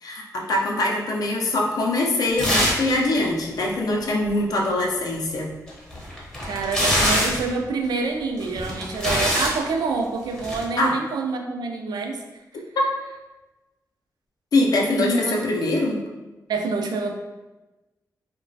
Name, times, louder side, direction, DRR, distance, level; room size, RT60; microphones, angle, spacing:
voice 1, 0.0-5.5 10.8-11.0 12.8-12.9 14.5-16.0, left 2 dB, 65° left, -1 dB, 0.4 m, -23 dB
sound 1, 2.4-2.9 3.2-3.3 5.7-7.5 8.4-9.6 10.4-10.6, equal, 10° left, 0.6 m, -23 dB
voice 2, 6.4-12.2 14.9-15.4 16.5-17.1, right 4 dB, 85° right, 4 dB, 0.3 m, -27 dB
2.9 x 2.1 x 2.6 m, 1.1 s
wide cardioid pair, 160°, 7 cm